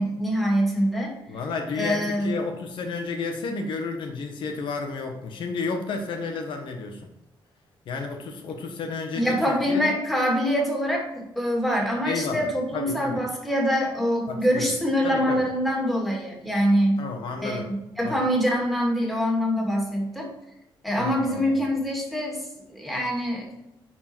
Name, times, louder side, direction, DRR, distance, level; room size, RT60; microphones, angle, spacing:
voice 1, 0.0-1.1 1.7-2.3 9.1-17.0 17.4-20.3 20.8-22.4 22.7-23.5, equal, ahead, -1 dB, 2.5 m, -24 dB
voice 2, 1.3-7.1 7.9-10.0 12.0-13.2 14.3-14.7 15.0-15.5 17.0-17.7 18.0-18.2 21.0-21.6, left 4 dB, 70° left, 4 dB, 1.2 m, -32 dB
10.0 x 4.6 x 4.5 m, 0.86 s
cardioid pair, 105°, 9 cm